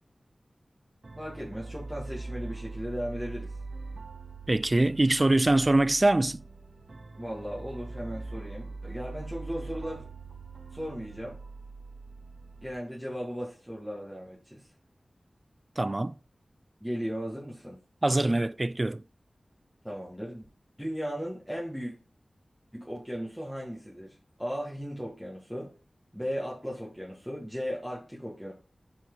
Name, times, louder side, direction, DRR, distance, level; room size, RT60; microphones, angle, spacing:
sound 1, 1.0-12.8, right 3 dB, 65° right, 0.8 m, -42 dB
voice 1, 1.2-3.5 7.2-10.1 10.7-11.4 12.6-14.7 16.8-17.8 19.8-20.4 20.8-21.9 22.7-25.7 26.1-28.5, equal, ahead, 1.8 m, -36 dB
voice 2, 4.5-6.4 15.8-16.2 18.0-19.0, right 2 dB, 35° right, 0.3 m, -24 dB
5.9 x 4.7 x 3.8 m
wide cardioid pair, 55°, 0 cm